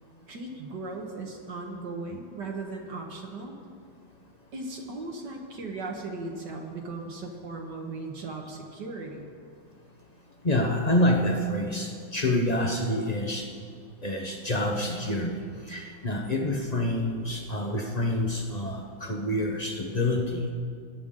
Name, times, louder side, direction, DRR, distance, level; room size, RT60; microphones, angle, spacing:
voice 1, 0.3-3.5 4.5-9.3, right 3 dB, 60° right, 1 dB, 1.7 m, -37 dB
voice 2, 10.4-13.5 14.0-20.5, left 1 dB, 50° left, 1 dB, 0.4 m, -27 dB
20.0 x 10.0 x 3.7 m, 2.2 s
omnidirectional pair, 2.2 m